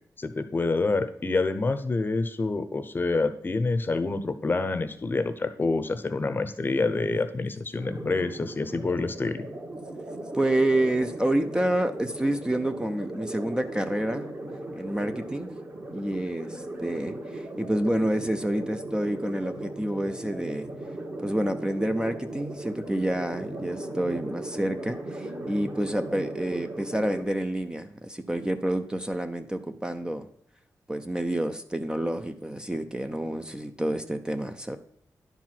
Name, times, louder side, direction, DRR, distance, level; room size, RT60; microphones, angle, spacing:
voice 1, 0.2-9.5, left 3 dB, 30° left, 10 dB, 0.8 m, -27 dB
sound 1, 7.8-27.3, right 1 dB, 40° right, 2.1 m, -38 dB
voice 2, 10.3-14.3 14.8-15.5 15.9-20.7 21.2-30.3 30.9-34.8, right 1 dB, 10° right, 7 dB, 0.6 m, -28 dB
10.5 x 4.6 x 5.8 m, 0.68 s
wide cardioid pair, 115°, 7 cm